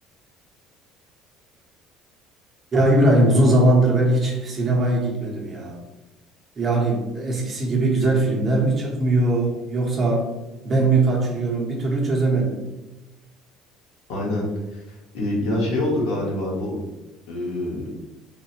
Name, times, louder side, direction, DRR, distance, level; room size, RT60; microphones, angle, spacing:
voice 1, 2.7-5.8 6.6-10.3 10.6-12.6, right 2 dB, 25° right, -3 dB, 0.9 m, -20 dB
voice 2, 14.1-14.5 14.7-16.7 17.3-17.8, left 1 dB, 80° left, -3 dB, 1.4 m, -25 dB
3.6 x 2.2 x 4.3 m, 1.1 s
cardioid pair, 165°, 0 cm